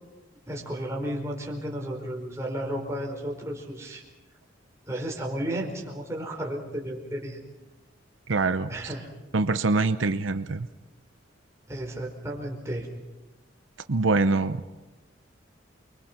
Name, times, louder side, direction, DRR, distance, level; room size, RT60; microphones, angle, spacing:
voice 1, 0.5-4.0 4.9-7.4 8.7-9.1 11.7-12.9, right 1 dB, 15° right, -1 dB, 4.6 m, -33 dB
voice 2, 8.3-8.7 9.3-10.7 13.9-14.7, right 3 dB, 75° right, 10 dB, 0.8 m, -24 dB
29.5 x 22.5 x 5.9 m, 1.1 s
head